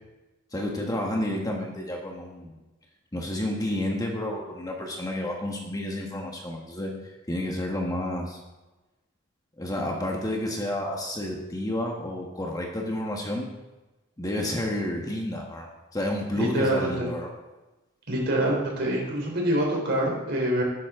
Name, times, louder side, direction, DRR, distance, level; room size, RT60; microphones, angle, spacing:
voice 1, 0.5-2.5 3.1-6.9 7.3-8.4 9.6-13.5 14.2-17.3, left 1 dB, 20° left, 0 dB, 1.4 m, -30 dB
voice 2, 16.3-17.1 18.1-20.6, right 1 dB, 55° right, -1 dB, 3.5 m, -25 dB
12.0 x 10.0 x 3.7 m, 1.1 s
head